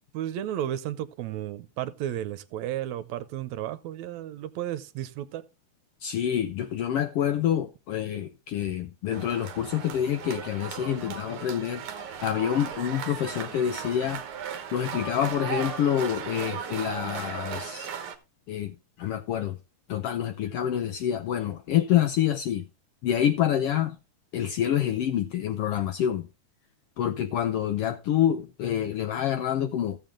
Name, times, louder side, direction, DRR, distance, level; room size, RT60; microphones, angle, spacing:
voice 1, 0.1-5.5, right 12 dB, 80° right, 1.9 m, -33 dB
voice 2, 6.0-11.8 12.2-14.2 14.7-17.9 18.5-19.6 19.9-22.6 23.0-24.0 24.3-26.3 27.0-30.0, left 10 dB, 75° left, 1.4 m, -27 dB
sound 1, 9.1-18.2, right 7 dB, 55° right, 1.8 m, -36 dB
14.5 x 7.0 x 3.7 m
omnidirectional pair, 3.3 m